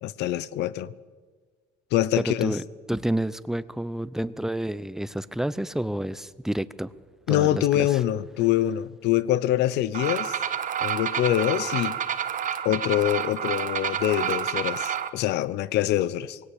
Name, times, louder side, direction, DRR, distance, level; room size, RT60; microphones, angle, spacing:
voice 1, 0.0-0.9 1.9-2.6 7.3-10.4 10.8-12.0 12.6-16.4, left 13 dB, 85° left, 0.8 m, -25 dB
voice 2, 2.2-2.6 2.9-6.9 7.3-8.0, right 1 dB, 5° right, 0.7 m, -29 dB
sound 1, 9.9-15.1, right 8 dB, 50° right, 1.4 m, -29 dB
20.0 x 17.0 x 8.4 m
cardioid pair, 110°, 17 cm